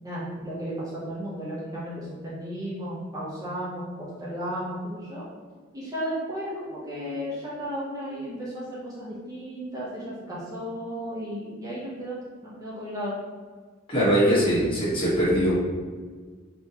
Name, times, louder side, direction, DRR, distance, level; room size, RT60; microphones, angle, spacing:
voice 1, 0.0-3.8 4.2-5.2 5.7-12.2 12.6-13.1, equal, 20° right, -8 dB, 0.7 m, -34 dB
voice 2, 13.9-15.5, equal, 25° left, -8 dB, 1.2 m, -21 dB
3.7 x 2.9 x 2.8 m, 1.5 s
head